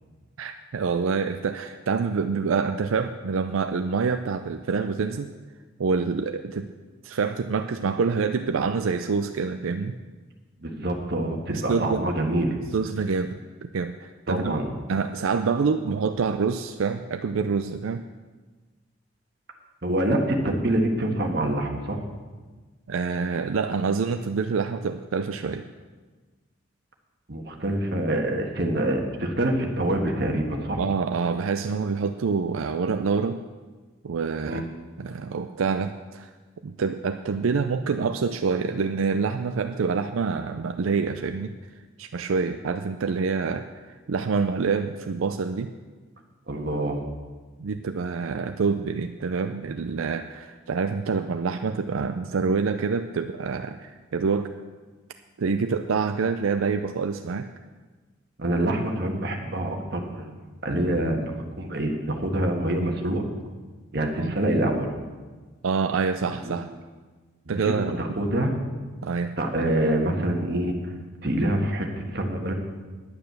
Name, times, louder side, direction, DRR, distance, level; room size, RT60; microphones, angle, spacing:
voice 1, 0.4-5.3 5.8-6.7 7.0-9.9 11.5-12.1 12.7-14.5 14.9-18.0 22.9-25.7 30.8-33.4 34.0-34.6 35.0-36.3 36.6-41.5 42.0-45.7 47.6-54.5 55.4-57.5 64.2-64.3 65.6-66.7 67.5-68.0 69.0-69.4 70.2-70.3, right 5 dB, 85° right, 8 dB, 0.4 m, -26 dB
voice 2, 10.6-12.5 14.3-14.7 19.8-22.0 27.3-30.9 34.4-34.6 46.5-47.0 58.4-60.3 60.6-63.3 63.9-64.9 66.4-66.6 67.4-68.5 69.4-70.7 71.2-72.5, right 1 dB, 50° right, 2 dB, 1.5 m, -26 dB
9.8 x 9.1 x 6.7 m, 1.3 s
head